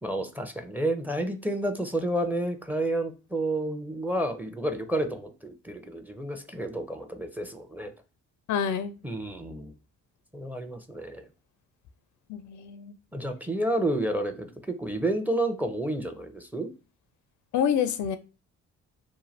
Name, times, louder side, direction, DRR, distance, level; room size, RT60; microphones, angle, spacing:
voice 1, 0.0-7.9 9.0-9.7 10.3-11.2 13.1-16.7, right 1 dB, 5° right, 0.5 m, -30 dB
voice 2, 8.5-8.9 12.3-12.9 17.5-18.2, left 8 dB, 55° left, 0.4 m, -27 dB
2.6 x 2.2 x 3.1 m
hypercardioid pair, 45°, 35 cm